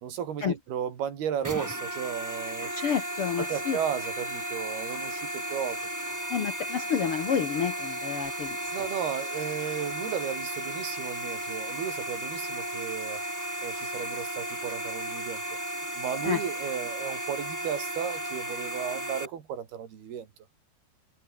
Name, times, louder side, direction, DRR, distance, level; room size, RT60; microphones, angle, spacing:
voice 1, 0.0-2.7 3.4-5.8 8.7-13.2 13.6-15.4 16.0-20.3, right 8 dB, 80° right, 4.8 m, -34 dB
sound 1, 1.4-19.3, right 1 dB, 5° right, 3.5 m, -34 dB
voice 2, 2.7-3.8 6.3-8.6 16.2-16.4, left 7 dB, 60° left, 1.5 m, -29 dB
omnidirectional pair, 4.4 m